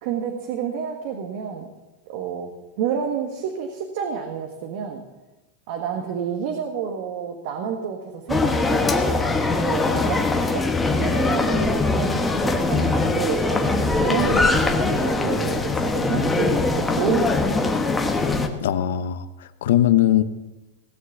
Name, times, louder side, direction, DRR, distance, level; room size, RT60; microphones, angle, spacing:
voice 1, 0.0-1.7 2.1-5.0 5.7-10.3 10.5-10.7 10.9-17.7, right 7 dB, 60° right, 3 dB, 1.6 m, -29 dB
sound 1, 8.3-18.5, left 3 dB, 10° left, 1.2 m, -22 dB
voice 2, 18.6-20.2, left 12 dB, 85° left, 12 dB, 0.8 m, -20 dB
17.5 x 6.6 x 7.9 m, 1.1 s
supercardioid pair, 145°, 0 cm